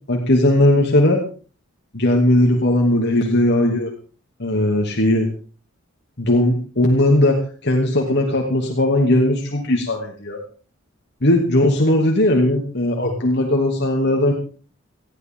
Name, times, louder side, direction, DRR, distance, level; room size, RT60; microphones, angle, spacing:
voice 1, 0.1-1.2 1.9-3.9 4.4-5.3 6.2-7.4 7.6-10.4 11.2-14.3, left 1 dB, 55° left, 0 dB, 2.8 m, -18 dB
19.5 x 15.0 x 3.8 m, 0.38 s
head